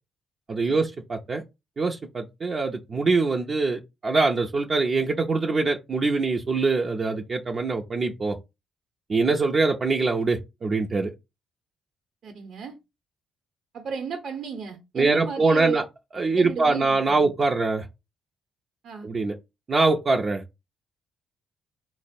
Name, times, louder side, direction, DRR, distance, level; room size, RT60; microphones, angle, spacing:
voice 1, 0.5-1.4 1.8-8.4 9.1-11.1 15.0-15.8 16.1-17.9 19.0-19.3 19.7-20.4, right 3 dB, 40° right, 0.5 m, -23 dB
voice 2, 12.2-12.8 13.7-15.8 16.4-17.3 18.8-19.1, right 6 dB, 65° right, 0.8 m, -33 dB
4.4 x 2.0 x 4.2 m
cardioid pair, 90°, 0 cm